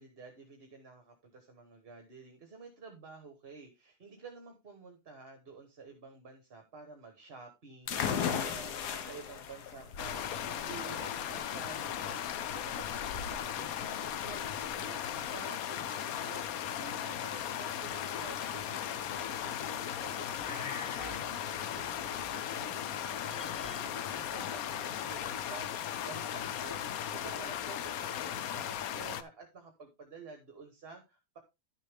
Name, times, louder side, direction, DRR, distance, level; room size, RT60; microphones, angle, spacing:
voice 1, 0.0-31.4, right 4 dB, 40° right, 4 dB, 1.5 m, -51 dB
sound 1, 7.9-15.3, left 7 dB, 90° left, 1.6 m, -38 dB
sound 2, 10.0-29.2, left 10 dB, 70° left, 1.1 m, -37 dB
sound 3, 20.2-22.8 23.0-25.2, left 3 dB, 25° left, 0.4 m, -49 dB
11.5 x 6.6 x 3.5 m, 0.25 s
omnidirectional pair, 1.7 m